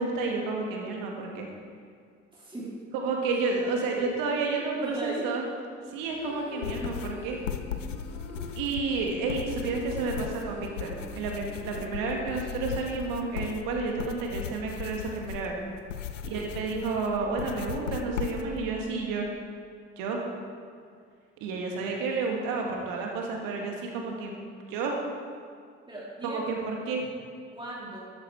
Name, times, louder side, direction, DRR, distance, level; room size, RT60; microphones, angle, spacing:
voice 1, 0.0-1.5 2.9-5.4 5.9-7.4 8.6-15.6 16.2-19.3 20.0-20.2 21.4-24.3 24.7-24.9 26.2-27.1, right 4 dB, 65° right, 0 dB, 2.2 m, -31 dB
voice 2, 2.3-2.8 3.3-4.0 4.6-5.2 8.3-8.5 16.2-16.6 25.9-26.4 26.8-27.0 27.5-28.0, right 1 dB, 15° right, -6 dB, 3.7 m, -40 dB
sound 1, 6.0-14.2, left 3 dB, 45° left, 2.1 m, -47 dB
sound 2, 6.6-18.7, left 8 dB, 85° left, 0.6 m, -37 dB
13.0 x 10.5 x 4.8 m, 2.2 s
figure-of-eight pair, 45°, 36 cm